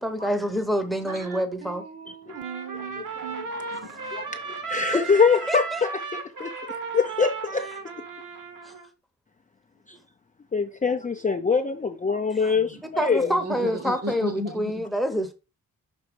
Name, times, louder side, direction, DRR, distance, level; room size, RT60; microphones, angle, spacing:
voice 1, 0.0-1.8 4.9-5.0 5.5-5.9 13.0-15.3, equal, ahead, 0.8 m, -27 dB
voice 2, 1.0-4.1 12.5-12.8 13.2-14.8, right 2 dB, 45° right, 1.0 m, -36 dB
Trumpet, 2.3-8.9, right 5 dB, 65° right, 1.4 m, -35 dB
voice 3, 4.1-6.5 6.9-7.6 10.5-13.3, left 5 dB, 25° left, 0.4 m, -24 dB
6.1 x 3.7 x 5.2 m
wide cardioid pair, 180°, 34 cm